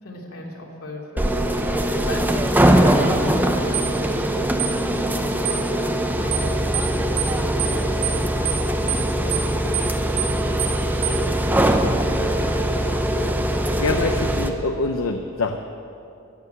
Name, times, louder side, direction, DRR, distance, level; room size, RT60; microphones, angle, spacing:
voice 1, 0.0-6.4 6.8-8.5 9.2-9.8 10.8-12.9, left 2 dB, 90° left, -2 dB, 2.9 m, -37 dB
sound 1, 1.2-14.5, right 1 dB, 10° right, 0.7 m, -21 dB
sound 2, 3.7-3.9 4.6-4.8 5.5-5.6 6.3-6.5 6.7-6.9 7.2-7.3 7.6-7.8 8.0-8.2 8.5-8.6 8.9-9.0 9.3-9.5 9.7-9.9 10.2-10.3 10.6-10.8 11.0-11.2, right 13 dB, 65° right, 1.1 m, -26 dB
voice 2, 13.8-15.6, left 3 dB, 70° left, 5 dB, 0.7 m, -25 dB
14.0 x 9.6 x 8.0 m, 2.6 s
head